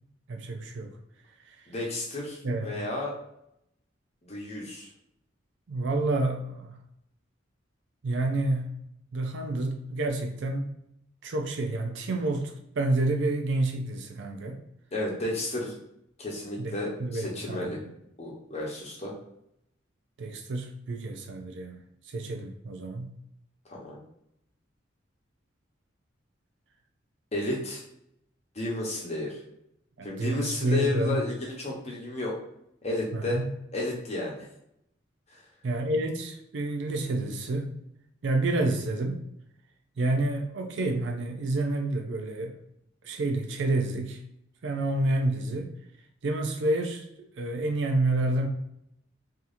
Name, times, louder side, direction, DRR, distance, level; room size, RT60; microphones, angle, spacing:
voice 1, 0.3-0.9 1.4-1.7 2.4-2.9 5.7-6.8 8.0-8.7 9.1-10.7 11.2-14.6 16.6-17.9 20.2-23.1 30.0-31.2 33.1-33.5 35.6-37.7 38.2-39.2 40.0-42.6 43.0-44.2 44.6-45.8 46.2-48.5, right 2 dB, 65° right, 3 dB, 0.5 m, -29 dB
voice 2, 1.7-3.1 4.2-4.9 14.9-15.8 16.2-17.8 18.2-19.1 23.7-24.0 27.3-27.8 28.5-29.4 30.0-32.4 32.8-33.4 33.7-34.5 35.3-35.4, left 2 dB, 35° left, -3 dB, 0.9 m, -32 dB
3.5 x 2.9 x 2.6 m, 0.78 s
head